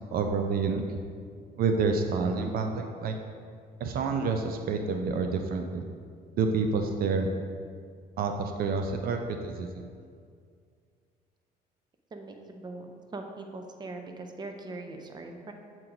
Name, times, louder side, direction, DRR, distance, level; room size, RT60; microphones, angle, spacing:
voice 1, 0.1-1.0 1.6-3.2 3.8-5.8 6.4-7.3 8.2-9.9, right 4 dB, 60° right, 5 dB, 0.5 m, -28 dB
voice 2, 12.1-15.5, right 2 dB, 25° right, 4 dB, 0.7 m, -41 dB
7.5 x 4.5 x 3.9 m, 2.2 s
cardioid pair, 110°, 17 cm